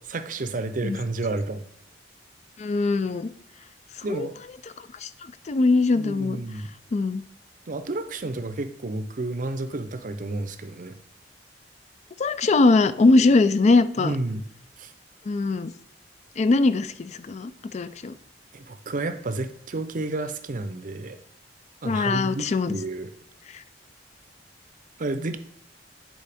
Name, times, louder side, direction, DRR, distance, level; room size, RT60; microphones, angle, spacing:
voice 1, 0.1-1.7 4.0-4.4 5.9-6.7 7.7-11.0 14.0-14.4 14.8-14.9 18.5-21.2 21.8-23.1 25.0-25.4, right 2 dB, 45° right, 10 dB, 0.6 m, -31 dB
voice 2, 2.6-3.3 4.1-4.3 5.0-5.1 5.5-6.4 6.9-7.2 12.2-14.1 15.3-15.7 16.4-18.1 21.8-22.8, left 3 dB, 40° left, 13 dB, 0.4 m, -21 dB
8.3 x 4.5 x 3.4 m, 0.75 s
head